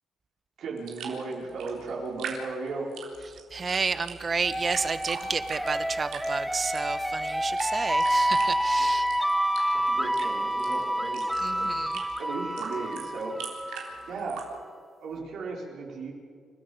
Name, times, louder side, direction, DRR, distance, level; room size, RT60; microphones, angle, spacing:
voice 1, 0.6-2.9 9.7-11.2 11.5-11.7 12.2-14.7 15.0-16.1, right 3 dB, 70° right, -2 dB, 4.5 m, -36 dB
sound 1, 0.8-14.4, right 7 dB, 85° right, 3.6 m, -43 dB
voice 2, 3.5-9.1 11.3-12.0, right 4 dB, 35° right, 13 dB, 1.1 m, -31 dB
sound 2, 4.4-14.1, equal, ahead, 0.7 m, -28 dB
29.5 x 13.5 x 7.1 m, 2.2 s
cardioid pair, 90°, 0 cm